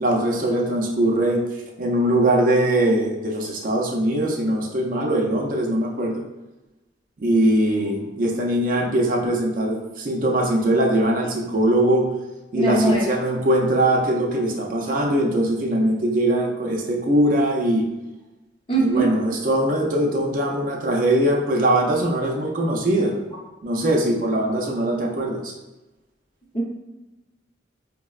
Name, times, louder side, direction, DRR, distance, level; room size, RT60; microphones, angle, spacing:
voice 1, 0.0-1.4 1.8-6.2 7.2-12.1 12.5-17.9 18.8-23.2 23.6-25.5, right 1 dB, 45° right, 0 dB, 0.4 m, -21 dB
voice 2, 12.5-13.1 18.7-19.1 26.5-26.6, right 3 dB, 30° left, -4 dB, 0.7 m, -21 dB
4.8 x 2.0 x 2.3 m, 1.0 s
head